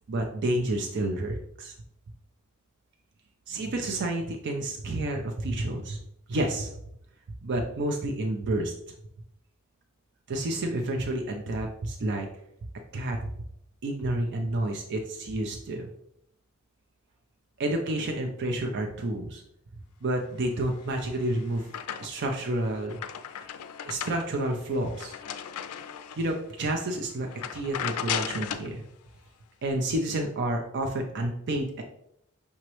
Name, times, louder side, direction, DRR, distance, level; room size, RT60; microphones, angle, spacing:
voice 1, 0.1-1.7 3.5-6.0 6.3-6.7 7.4-8.7 10.3-12.3 12.9-13.3 13.8-15.9 17.6-19.4 20.0-21.7 22.0-23.0 23.4-23.5 23.9-25.1 26.2-28.9 29.6-31.8, right 1 dB, 50° right, 2 dB, 0.5 m, -30 dB
sound 1, 20.8-22.4 22.7-26.4 26.8-27.0 27.3-28.7, left 9 dB, 85° left, 0.4 m, -36 dB
5.6 x 3.0 x 3.0 m, 0.76 s
head